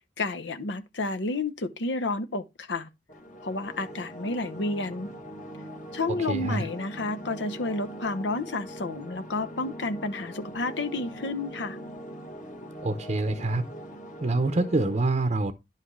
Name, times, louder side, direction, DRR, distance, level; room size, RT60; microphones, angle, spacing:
voice 1, 0.2-2.9 3.4-5.1 5.9-11.8, left 2 dB, 85° left, 0.9 m, -31 dB
sound 1, 3.1-15.0, right 1 dB, 45° left, 1.5 m, -41 dB
voice 2, 6.3-6.7 12.8-13.6 14.2-15.5, right 2 dB, 40° right, 0.7 m, -26 dB
10.5 x 5.7 x 3.1 m
head